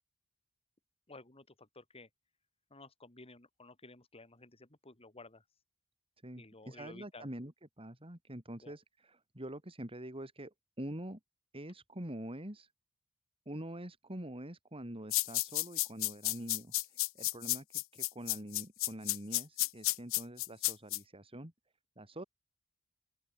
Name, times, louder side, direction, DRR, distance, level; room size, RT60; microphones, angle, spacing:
voice 1, 1.1-2.1 2.7-5.4 6.4-7.3 8.6-8.7, left 2 dB, 25° left, 3.0 m, -54 dB
voice 2, 6.2-11.2 11.5-12.7 13.5-21.5 22.0-22.2, right 1 dB, 25° right, 3.6 m, -45 dB
sound 1, 15.1-21.0, left 19 dB, 65° left, 0.8 m, -32 dB
open air
head